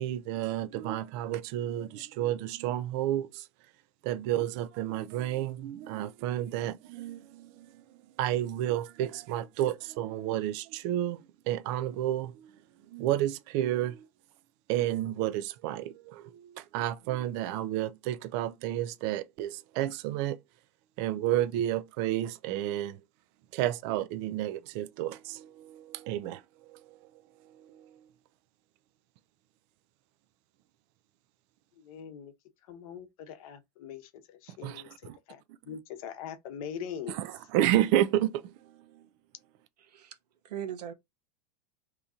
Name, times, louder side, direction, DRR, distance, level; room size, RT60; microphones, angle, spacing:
voice 1, 0.0-3.5 4.0-12.5 12.9-14.1 14.7-20.4 21.0-23.0 23.5-27.0 27.6-27.9 34.6-35.2 35.7-35.8 37.1-39.0, right 13 dB, 45° right, 0.4 m, -31 dB
voice 2, 31.8-32.3 32.7-37.2, left 8 dB, 60° left, 0.9 m, -42 dB
voice 3, 39.8-40.2 40.4-40.9, right 9 dB, 90° right, 0.8 m, -39 dB
2.9 x 2.7 x 3.6 m
supercardioid pair, 135°, 20 cm